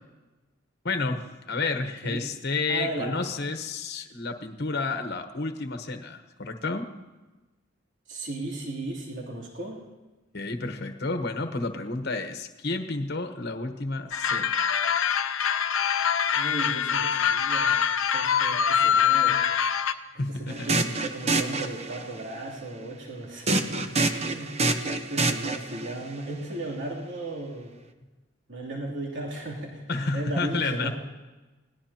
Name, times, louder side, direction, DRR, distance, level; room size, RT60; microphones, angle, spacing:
voice 1, 0.8-6.9 10.3-14.6 20.2-20.8 29.9-30.9, left 3 dB, 55° left, 5 dB, 1.1 m, -30 dB
voice 2, 2.7-3.2 8.1-9.8 16.3-17.9 18.1-19.4 20.3-24.5 24.8-27.7 28.5-30.9, right 2 dB, 65° right, -3 dB, 3.0 m, -36 dB
sound 1, 14.1-19.9, left 7 dB, 85° left, 0.7 m, -24 dB
sound 2, 20.5-22.2 23.5-25.9, right 2 dB, 30° right, 0.8 m, -27 dB
26.5 x 18.5 x 2.9 m, 1.2 s
head